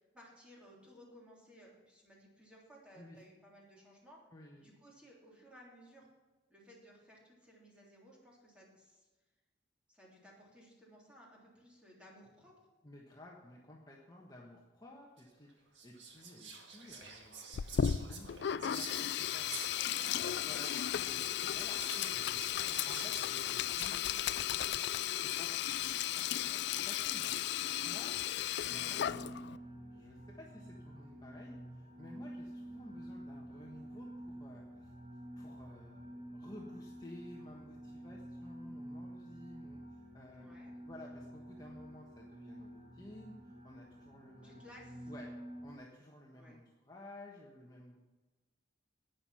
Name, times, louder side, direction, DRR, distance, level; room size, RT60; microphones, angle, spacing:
voice 1, 0.0-4.2 4.6-6.1 6.5-9.1 9.9-12.5 40.3-40.7 44.4-45.1 46.3-46.6, equal, 5° right, -4 dB, 3.4 m, -59 dB
voice 2, 4.3-4.7 12.8-17.5 17.7-19.7 20.1-20.8 21.0-22.4 22.9-24.4 25.2-27.3 27.8-28.1 28.6-34.9 35.3-40.6 40.8-44.7 45.1-45.3 45.6-48.0, left 1 dB, 20° left, -2 dB, 1.3 m, -54 dB
Whispering, 15.2-15.3 15.7-23.9, right 4 dB, 70° right, 1.9 m, -49 dB
Sink (filling or washing), 17.5-29.6, left 10 dB, 65° left, 0.4 m, -35 dB
sound 1, 28.6-45.7, right 1 dB, 40° right, 1.6 m, -49 dB
11.0 x 9.2 x 5.7 m, 1.2 s
head